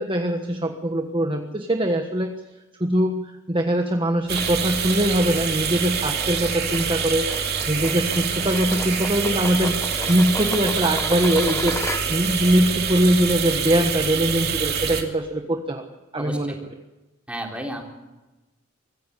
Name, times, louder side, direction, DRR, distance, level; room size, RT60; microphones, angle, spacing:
voice 1, 0.0-2.4 2.8-7.3 7.7-11.8 12.1-15.8 16.1-16.7, right 1 dB, 25° right, 4 dB, 1.4 m, -22 dB
sound 1, 4.3-12.4, left 2 dB, 10° left, 1.1 m, -35 dB
sound 2, 4.3-15.0, right 6 dB, 45° right, 2.7 m, -26 dB
voice 2, 16.2-16.6 17.3-17.8, right 1 dB, 5° right, 1 dB, 3.8 m, -32 dB
24.5 x 15.5 x 8.4 m, 1.1 s
head